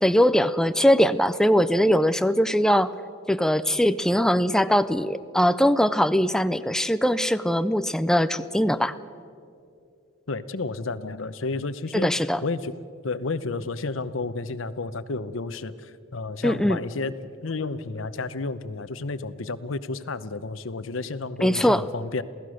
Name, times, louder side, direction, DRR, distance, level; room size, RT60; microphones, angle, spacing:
voice 1, 0.0-2.9 3.3-8.9 11.9-12.4 16.4-16.8 21.4-21.8, equal, 5° left, 12 dB, 0.4 m, -21 dB
voice 2, 10.3-12.1 12.4-12.7 13.0-17.1 17.4-22.2, left 3 dB, 75° left, 14 dB, 0.9 m, -31 dB
27.5 x 17.0 x 6.4 m, 2.4 s
head